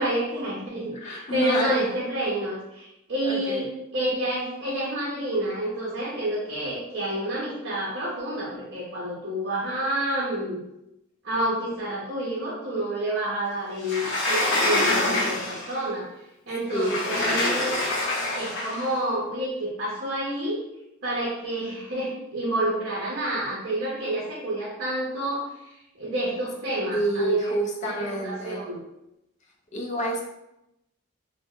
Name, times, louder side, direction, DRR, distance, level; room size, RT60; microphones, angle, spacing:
voice 1, 0.0-10.6 11.2-16.1 16.5-17.7 18.3-20.6 21.0-27.5 27.8-27.9 28.2-28.8, right 1 dB, 55° right, -6 dB, 0.6 m, -29 dB
voice 2, 0.9-1.8 3.2-3.6 16.7-17.8 26.9-28.6 29.7-30.2, equal, 35° left, 0 dB, 0.4 m, -29 dB
Sliding door, 13.8-15.8 16.7-18.9, left 2 dB, 65° left, 0.7 m, -25 dB
2.1 x 2.0 x 3.5 m, 0.88 s
head